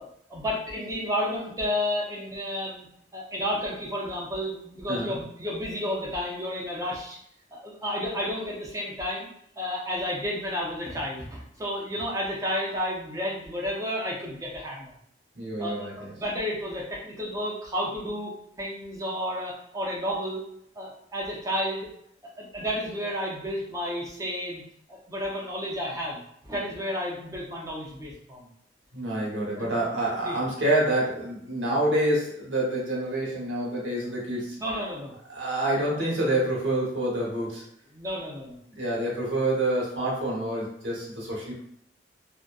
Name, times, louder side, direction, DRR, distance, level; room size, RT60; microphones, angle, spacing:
voice 1, 0.0-2.9 3.1-7.2 7.5-9.3 9.6-14.9 15.6-20.4 20.8-21.9 22.4-24.6 24.9-28.5 29.6-29.7 30.2-30.4 34.6-35.1 37.9-38.6, equal, 20° right, -3 dB, 0.5 m, -31 dB
voice 2, 15.3-16.1 28.9-34.6 35.3-37.6 38.7-41.5, right 1 dB, 80° right, -4 dB, 0.9 m, -27 dB
2.6 x 2.1 x 2.3 m, 0.70 s
head